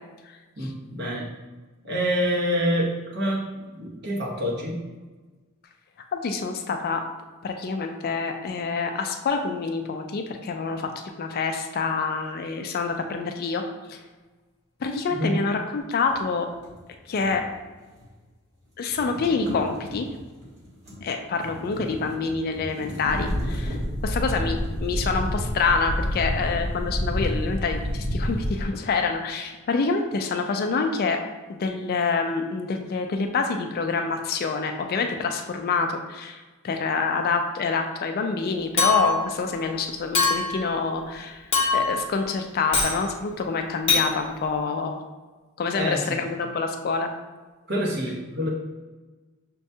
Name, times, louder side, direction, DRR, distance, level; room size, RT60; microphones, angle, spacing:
voice 1, 0.6-1.3 1.8-4.8 15.1-15.3 45.7-46.2 47.7-48.5, equal, 50° right, -4 dB, 1.0 m, -27 dB
voice 2, 6.1-7.0 7.4-10.9 11.2-13.6 13.9-14.0 14.8-16.5 17.1-17.4 18.8-20.1 21.0-23.8 24.0-31.2 31.5-41.5 41.7-45.0 45.6-47.1, left 4 dB, 45° left, 5 dB, 0.3 m, -27 dB
sound 1, 16.0-18.2 18.5-25.8, left 1 dB, 35° right, 1.2 m, -40 dB
sound 2, 23.0-28.6, equal, 80° right, 1.2 m, -28 dB
Chink clink, 38.8-39.3 40.1-40.6 41.5-42.0 42.7-43.0 43.9-44.1, left 4 dB, 25° left, 0.7 m, -22 dB
6.1 x 2.2 x 2.7 m, 1.3 s
head